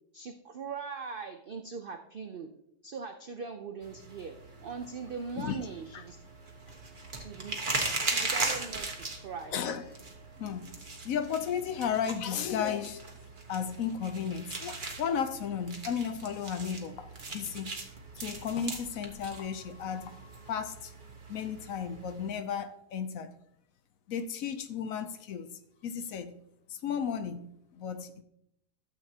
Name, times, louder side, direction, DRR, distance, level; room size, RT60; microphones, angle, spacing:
voice 1, 0.1-2.5 2.8-4.4 4.6-6.2 7.2-7.6 8.1-8.9 9.2-9.6, right 5 dB, 70° right, 0.5 m, -40 dB
sound 1, 3.8-22.3, right 3 dB, 35° right, 1.2 m, -39 dB
voice 2, 9.5-10.0 10.4-13.0 13.5-17.7 18.1-20.9 21.3-23.3 24.1-25.5 25.8-26.3 26.7-27.5 27.7-28.2, left 7 dB, 65° left, 1.0 m, -34 dB
12.5 x 7.6 x 2.8 m
omnidirectional pair, 1.7 m